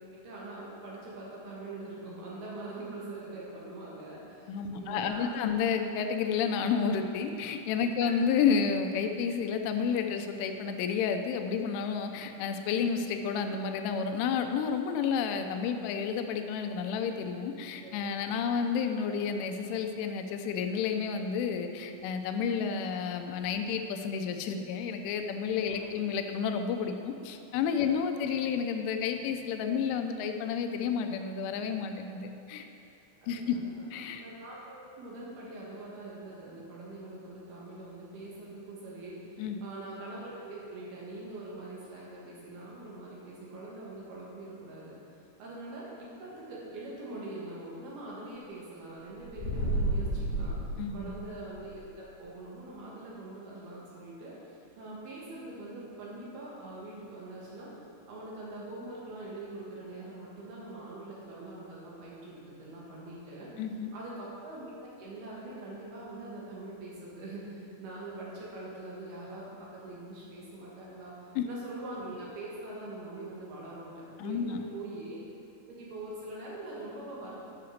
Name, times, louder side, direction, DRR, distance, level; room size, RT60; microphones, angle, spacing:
voice 1, 0.1-5.6 17.8-17.9 25.6-25.9 27.8-27.9 32.8-32.9 33.2-33.8 34.2-50.6 50.9-57.7 58.1-63.5 63.9-71.2 71.4-75.2 75.6-77.5, right 2 dB, 65° right, -6 dB, 3.2 m, -43 dB
voice 2, 4.5-32.7 33.3-33.6 33.9-34.2 39.4-39.6 50.8-51.1 63.6-63.9 71.4-71.5 74.2-74.6, left 6 dB, 85° left, 6 dB, 3.1 m, -31 dB
sound 1, 49.2-51.7, right 1 dB, 40° left, 2.8 m, -31 dB
9.8 x 5.8 x 6.4 m, 2.7 s
omnidirectional pair, 5.5 m